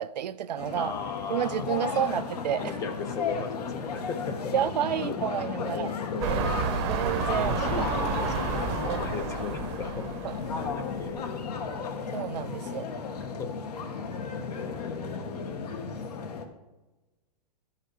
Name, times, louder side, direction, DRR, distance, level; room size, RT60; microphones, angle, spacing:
voice 1, 0.0-0.9 1.3-2.7 4.5-5.9 6.9-7.9 8.8-9.1 10.2-10.4 12.1-12.9, right 10 dB, 90° right, 0.5 m, -30 dB
sound 1, 0.6-16.4, left 5 dB, 70° left, 1.3 m, -34 dB
voice 2, 0.7-1.7 2.1-2.2 2.6-4.5 5.0-5.2 5.6-6.5 7.4-12.1 12.7-12.8 13.2-13.5 14.5-15.7, left 5 dB, 15° left, 0.4 m, -38 dB
sound 2, 6.2-11.2 11.8-11.9, right 7 dB, 40° right, 0.7 m, -31 dB
11.0 x 5.7 x 4.6 m
hypercardioid pair, 150°, 21 cm